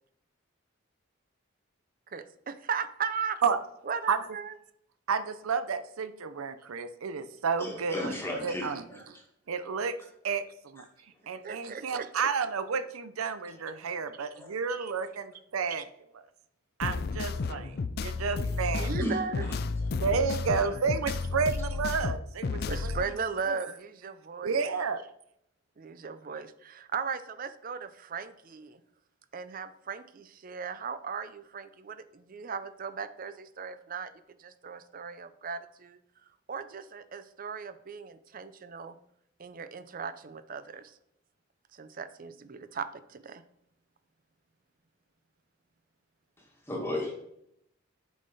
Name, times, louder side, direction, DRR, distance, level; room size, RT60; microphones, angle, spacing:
voice 1, 2.1-3.4 3.8-4.6 11.4-12.1 14.7-14.9 15.7-15.8 18.7-19.5 21.0-21.1 22.7-24.6 25.8-28.8 29.3-34.1 34.4-36.0 36.5-39.0 39.4-41.0 41.7-43.4, right 6 dB, 40° right, 12 dB, 0.5 m, -37 dB
voice 2, 5.1-8.1 8.4-8.8 9.5-10.0 10.2-10.8 11.3-15.8 16.8-18.9 20.0-23.0 23.5-23.6 24.4-25.0, right 5 dB, 90° right, 12 dB, 0.5 m, -31 dB
voice 3, 7.6-9.2 10.8-10.9 13.5-13.7 14.4-14.5 17.5-17.7 18.2-18.6 19.0-19.5 20.5-20.6 46.4-47.2, left 1 dB, 10° left, -1 dB, 1.6 m, -36 dB
sound 1, 16.8-23.0, left 4 dB, 50° left, 0.4 m, -32 dB
8.3 x 5.6 x 4.0 m, 0.75 s
head